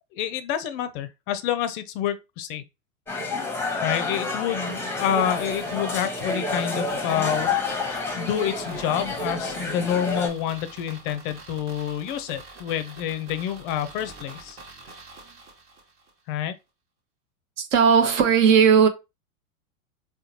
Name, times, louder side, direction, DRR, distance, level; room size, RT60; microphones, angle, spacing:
voice 1, 0.1-2.6 3.8-7.5 8.1-14.6 16.3-16.6, left 10 dB, 40° left, 0.4 m, -28 dB
sound 1, 3.1-10.3, left 3 dB, 5° left, 0.8 m, -29 dB
sound 2, 5.2-16.1 16.4-16.5, right 3 dB, 30° right, 0.9 m, -45 dB
voice 2, 17.6-18.9, right 7 dB, 60° right, 0.9 m, -17 dB
3.7 x 2.2 x 2.9 m
hypercardioid pair, 100°, 42 cm